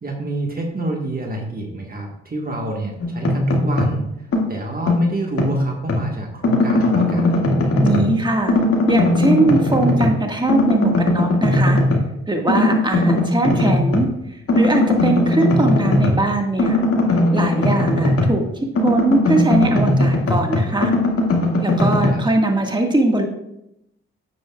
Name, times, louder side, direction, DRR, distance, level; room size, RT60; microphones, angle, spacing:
voice 1, 0.0-7.3 22.1-22.2, right 2 dB, 30° right, 1 dB, 1.6 m, -28 dB
sound 1, 3.0-4.0 4.3-6.1 6.4-8.2 8.5-10.2 10.5-12.1 12.5-14.1 14.5-18.5 18.7-22.1, left 1 dB, 50° left, 2.1 m, -19 dB
voice 2, 7.8-8.5 8.9-11.8 12.3-16.8 17.3-18.4 18.8-20.9 21.6-23.2, right 2 dB, 15° right, 2 dB, 1.7 m, -20 dB
9.3 x 8.9 x 2.4 m, 0.81 s
supercardioid pair, 50°, 29 cm